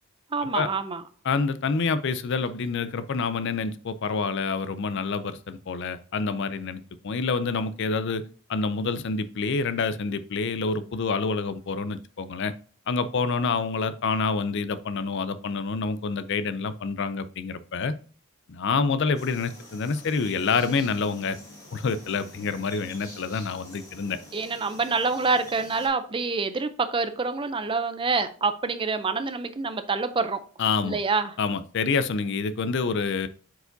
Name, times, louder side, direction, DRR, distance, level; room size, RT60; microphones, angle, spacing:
voice 1, 0.3-1.0 24.3-30.4 30.8-31.3, right 4 dB, 20° right, 10 dB, 0.4 m, -26 dB
voice 2, 1.2-8.2 8.5-12.5 12.9-17.9 18.5-21.4 21.7-24.2 30.6-31.0 31.4-33.3, left 4 dB, 50° left, 14 dB, 0.4 m, -27 dB
sound 1, 19.1-25.9, left 1 dB, 15° left, 1.7 m, -47 dB
8.0 x 4.8 x 2.6 m, 0.41 s
head